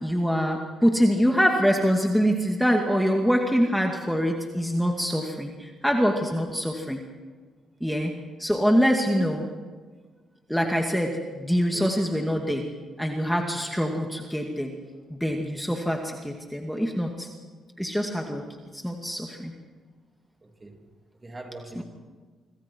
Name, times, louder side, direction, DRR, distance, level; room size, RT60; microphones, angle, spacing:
voice 1, 0.0-7.0 7.8-8.1 8.4-9.4 10.5-12.6 13.0-14.7 15.1-17.3 17.8-18.4 18.7-19.5 21.8-21.9, equal, ahead, 2 dB, 2.3 m, -24 dB
voice 2, 11.7-12.1 20.4-20.8 21.2-21.8, right 2 dB, 25° right, 3 dB, 3.3 m, -43 dB
26.0 x 24.5 x 4.7 m, 1.5 s
cardioid pair, 90°, 0 cm